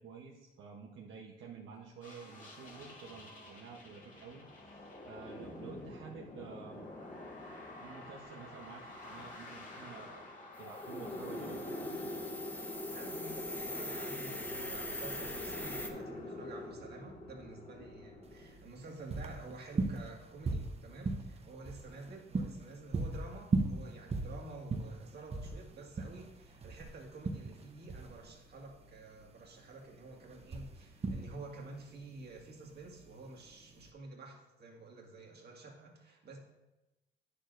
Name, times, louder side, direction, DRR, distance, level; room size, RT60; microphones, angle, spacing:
voice 1, 0.0-6.9 7.8-11.8, right 5 dB, 75° right, -1 dB, 0.9 m, -50 dB
sound 1, 2.0-18.6, left 1 dB, 40° left, 2.2 m, -45 dB
sound 2, 10.6-15.9, left 1 dB, 10° left, 1.0 m, -43 dB
voice 2, 12.9-36.4, right 3 dB, 55° right, 0 dB, 1.9 m, -50 dB
sound 3, 18.2-33.9, right 3 dB, 30° right, 0.8 m, -38 dB
9.5 x 6.7 x 2.6 m, 1.0 s
cardioid pair, 90°, 20 cm